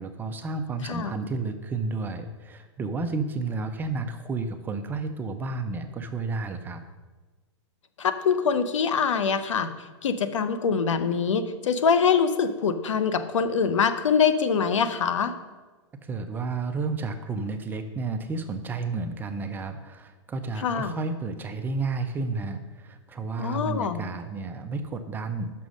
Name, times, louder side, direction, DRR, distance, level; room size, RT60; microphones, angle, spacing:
voice 1, 0.0-6.8 16.0-25.5, right 3 dB, 10° right, 7 dB, 0.4 m, -31 dB
voice 2, 8.0-9.7 10.0-15.3 20.6-21.0 23.4-24.0, left 6 dB, 85° left, 11 dB, 0.7 m, -24 dB
6.2 x 5.6 x 6.2 m, 1.3 s
hypercardioid pair, 140°, 15 cm